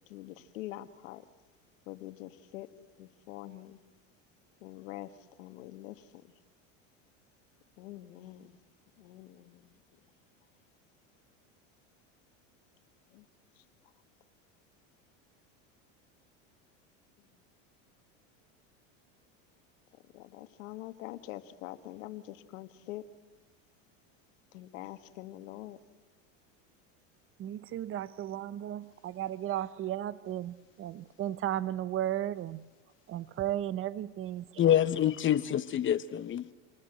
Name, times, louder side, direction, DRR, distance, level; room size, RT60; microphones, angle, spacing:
voice 1, 0.1-1.2 1.9-2.7 3.0-3.8 4.6-5.1 5.4-6.1 7.8-8.6 9.0-9.6 13.1-13.3 20.1-23.0 24.5-25.8, left 16 dB, 80° left, 1.7 m, -44 dB
voice 2, 27.4-32.7 33.1-34.6, right 12 dB, 35° right, 0.9 m, -35 dB
voice 3, 34.6-36.5, left 10 dB, 30° left, 1.0 m, -26 dB
27.0 x 20.0 x 7.8 m
supercardioid pair, 115°, 39 cm